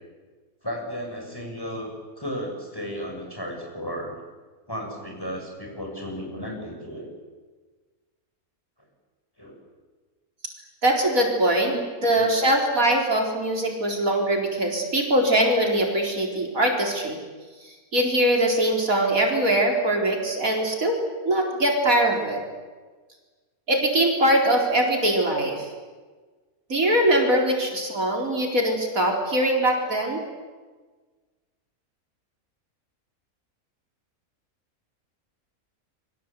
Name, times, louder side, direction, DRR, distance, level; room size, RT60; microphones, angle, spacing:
voice 1, 0.6-4.2 4.7-7.1 9.4-9.6 11.6-11.9 12.1-12.5, equal, 15° left, 1 dB, 6.5 m, -34 dB
voice 2, 10.8-11.7 12.0-17.2 17.9-20.9 21.2-22.4 23.7-25.7 26.7-30.2, right 1 dB, 70° right, 1 dB, 4.7 m, -22 dB
27.5 x 24.0 x 8.4 m, 1.4 s
omnidirectional pair, 1.5 m